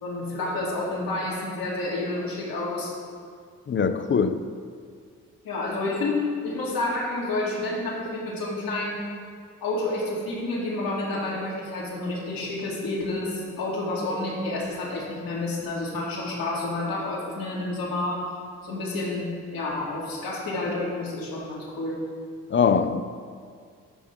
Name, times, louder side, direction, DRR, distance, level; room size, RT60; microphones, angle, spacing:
voice 1, 0.0-2.9 5.4-9.0 9.6-18.4 18.6-22.0, left 2 dB, 70° left, 2.3 m, -29 dB
voice 2, 3.7-4.4 22.5-23.0, left 6 dB, 30° left, 0.6 m, -22 dB
12.5 x 5.7 x 3.6 m
hypercardioid pair, 40°, 37 cm